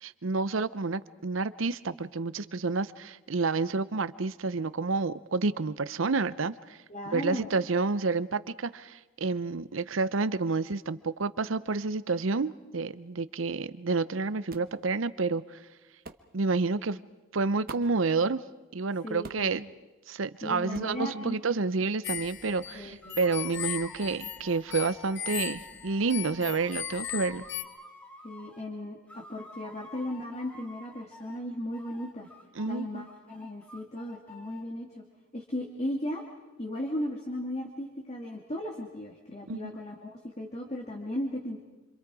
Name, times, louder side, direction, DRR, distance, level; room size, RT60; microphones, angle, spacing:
voice 1, 0.0-6.8 7.1-15.6 16.3-17.0 17.3-18.4 18.7-19.7 20.1-27.4 32.6-33.0 39.5-39.8, right 4 dB, 80° right, 16 dB, 0.7 m, -29 dB
voice 2, 6.9-7.5 19.0-19.5 20.4-21.4 22.7-23.2 28.2-32.3 32.7-35.0 35.3-36.2 36.6-41.7, left 1 dB, 35° left, 1 dB, 2.2 m, -36 dB
sound 1, 14.5-14.8 16.0-16.3 17.7-18.0 19.2-19.6 20.7-21.0, right 2 dB, 50° right, 1.1 m, -44 dB
sound 2, 22.0-27.6, left 10 dB, 60° left, 1.2 m, -37 dB
sound 3, 23.0-28.7 29.1-31.4 31.7-34.6, left 2 dB, 5° left, 1.9 m, -50 dB
27.5 x 26.5 x 4.9 m, 1.1 s
head